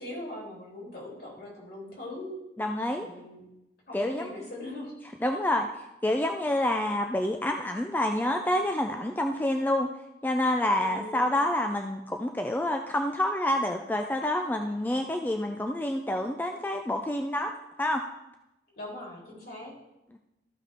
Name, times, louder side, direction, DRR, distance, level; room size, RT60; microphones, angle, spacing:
voice 1, 0.0-2.4 2.9-3.4 3.9-4.9 10.8-11.3 18.8-19.7, left 1 dB, 60° left, -4 dB, 3.4 m, -41 dB
voice 2, 2.6-3.1 3.9-4.3 5.2-5.7 6.0-9.9 10.2-17.5 17.8-18.0, left 1 dB, 10° left, 4 dB, 0.4 m, -28 dB
14.0 x 5.6 x 3.6 m, 0.92 s
head